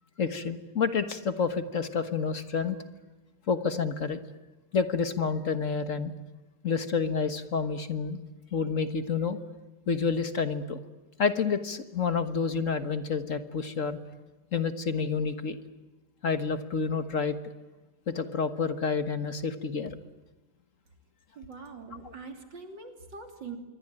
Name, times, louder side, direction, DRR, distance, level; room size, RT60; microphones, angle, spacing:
voice 1, 0.2-2.8 3.5-4.2 4.7-6.1 6.6-8.2 8.5-9.4 9.9-10.8 11.2-14.0 14.5-15.6 16.2-17.4 18.1-20.0 22.0-22.1, left 5 dB, 50° left, 9 dB, 1.6 m, -29 dB
voice 2, 21.4-23.6, right 4 dB, 90° right, 4 dB, 3.7 m, -43 dB
26.5 x 23.0 x 8.9 m, 1.1 s
omnidirectional pair, 1.9 m